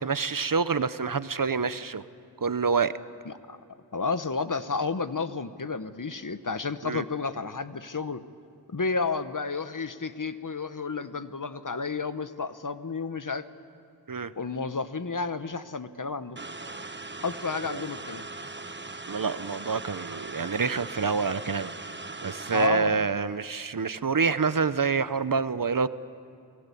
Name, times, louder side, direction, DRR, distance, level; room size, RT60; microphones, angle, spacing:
voice 1, 0.0-2.0 2.4-2.9 6.8-7.0 14.1-14.3 17.6-17.8 19.1-21.7 22.2-25.9, right 5 dB, 55° right, 14 dB, 0.8 m, -27 dB
voice 2, 3.3-3.6 3.9-8.2 8.7-13.5 14.4-16.4 17.2-18.3 22.5-23.1, left 4 dB, 50° left, 12 dB, 1.1 m, -31 dB
sound 1, 16.4-22.7, right 3 dB, 25° right, 1.1 m, -40 dB
29.5 x 19.5 x 8.4 m, 2.6 s
wide cardioid pair, 50°, 40 cm